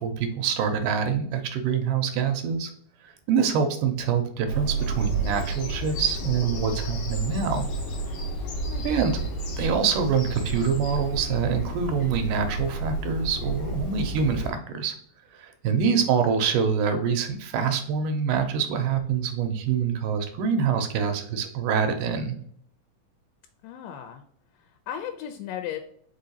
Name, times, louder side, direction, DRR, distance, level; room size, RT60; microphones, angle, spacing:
voice 1, 0.0-2.7 3.0-7.6 8.8-9.2 9.6-14.9 15.3-22.4, right 6 dB, 80° right, 6 dB, 2.1 m, -25 dB
Bird vocalization bird call bird song, 4.5-14.5, right 2 dB, 60° left, 1.7 m, -31 dB
voice 2, 8.7-9.1 15.7-16.0 23.6-24.2 24.5-25.8, left 10 dB, 85° left, 6 dB, 2.2 m, -37 dB
5.0 x 3.8 x 2.7 m, 0.64 s
omnidirectional pair, 3.9 m